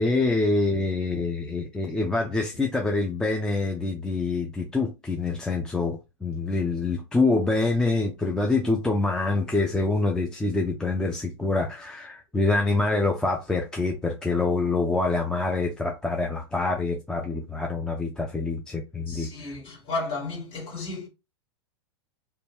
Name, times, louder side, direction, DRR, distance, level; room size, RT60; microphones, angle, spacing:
voice 1, 0.0-19.5, left 3 dB, 5° left, 0.4 m, -26 dB
voice 2, 19.1-21.1, left 3 dB, 35° left, 1.7 m, -33 dB
2.6 x 2.2 x 3.0 m
hypercardioid pair, 100°, 16 cm